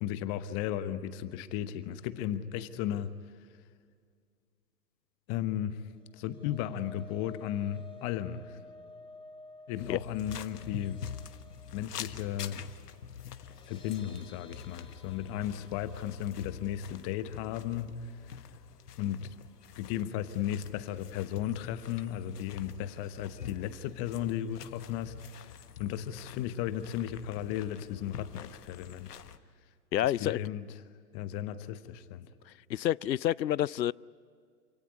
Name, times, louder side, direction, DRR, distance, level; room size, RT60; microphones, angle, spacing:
voice 1, 0.0-3.1 5.3-5.8 6.1-8.6 9.7-11.0 11.7-12.7 13.7-18.0 18.3-18.4 19.0-19.3 19.8-29.1 30.0-30.7 31.1-32.3, left 11 dB, 25° left, 1.1 m, -35 dB
sound 1, 5.9-20.1 20.5-20.7 21.0-21.1, left 2 dB, 10° left, 2.9 m, -55 dB
sound 2, 9.7-29.4, left 8 dB, 65° left, 1.4 m, -46 dB
voice 2, 29.9-30.4 32.7-33.9, left 12 dB, 85° left, 0.6 m, -28 dB
27.5 x 18.0 x 9.6 m
hypercardioid pair, 125°, 50 cm